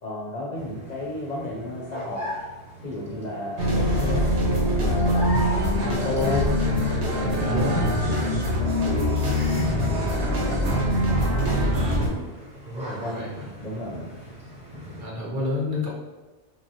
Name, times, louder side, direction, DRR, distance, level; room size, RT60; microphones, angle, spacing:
voice 1, 0.0-2.3 2.8-5.3 5.8-6.6 7.1-9.2 9.6-11.9 12.9-13.3 13.6-14.0, left 1 dB, 50° left, -5 dB, 0.5 m, -33 dB
sound 1, 0.6-15.1, left 1 dB, 5° right, 0.9 m, -39 dB
sound 2, 3.6-12.1, equal, 80° right, 1.1 m, -23 dB
voice 2, 5.3-5.6 7.2-7.8 12.6-13.4 15.0-15.9, left 2 dB, 50° right, -5 dB, 0.8 m, -29 dB
3.1 x 2.4 x 2.7 m, 1.2 s
omnidirectional pair, 1.2 m